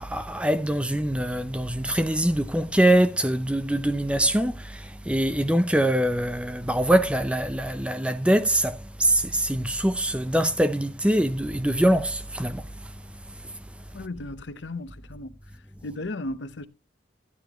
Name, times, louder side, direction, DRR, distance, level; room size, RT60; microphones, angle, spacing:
voice 1, 0.0-12.7, right 1 dB, 5° right, 0.5 m, -23 dB
voice 2, 13.9-15.3 15.8-16.7, left 2 dB, 75° left, 0.8 m, -35 dB
12.5 x 10.5 x 3.0 m
head